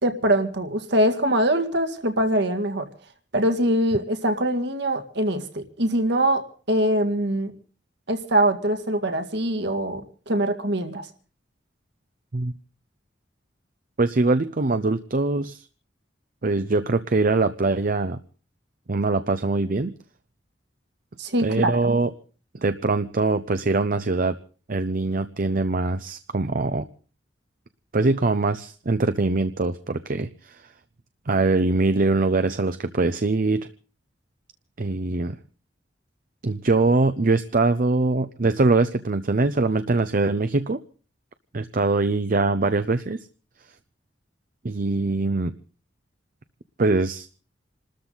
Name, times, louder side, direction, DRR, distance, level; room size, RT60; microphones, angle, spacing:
voice 1, 0.0-2.9 3.3-7.5 8.1-11.1 21.2-22.0, right 1 dB, 65° right, 6 dB, 2.0 m, -23 dB
voice 2, 14.0-15.7 16.4-18.2 18.9-20.0 21.4-22.1 22.6-24.4 24.7-26.9 27.9-30.7 31.3-33.7 34.8-35.4 36.4-40.8 41.5-43.3 44.6-45.5 46.8-47.3, right 3 dB, 50° right, 10 dB, 0.7 m, -23 dB
27.5 x 13.5 x 4.0 m, 0.40 s
head